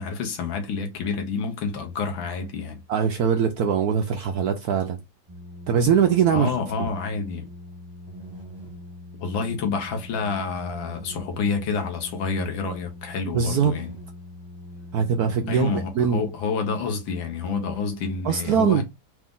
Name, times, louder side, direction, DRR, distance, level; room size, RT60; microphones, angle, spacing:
voice 1, 0.0-2.8 6.3-7.5 9.2-13.9 15.5-18.8, left 5 dB, 75° left, 1.8 m, -28 dB
voice 2, 2.9-5.0 5.7-6.5 13.3-13.8 14.9-16.2 18.2-18.8, right 7 dB, 75° right, 0.9 m, -22 dB
sound 1, 5.3-15.9, left 1 dB, 20° right, 0.7 m, -42 dB
4.7 x 2.6 x 3.6 m
omnidirectional pair, 2.2 m